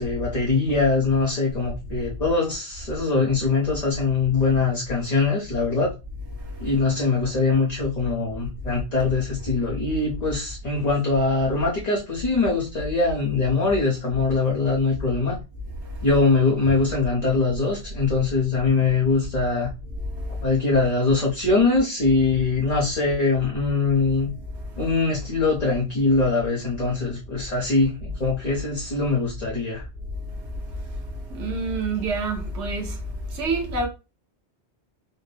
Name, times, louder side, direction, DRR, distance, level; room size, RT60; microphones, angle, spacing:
voice 1, 0.0-5.9 6.6-15.4 16.0-19.7 20.4-24.3 24.8-29.9, left 3 dB, 40° left, 0.9 m, -22 dB
voice 2, 31.3-32.9 33.3-33.9, right 3 dB, 85° right, 1.2 m, -26 dB
4.4 x 2.1 x 3.2 m
omnidirectional pair, 1.1 m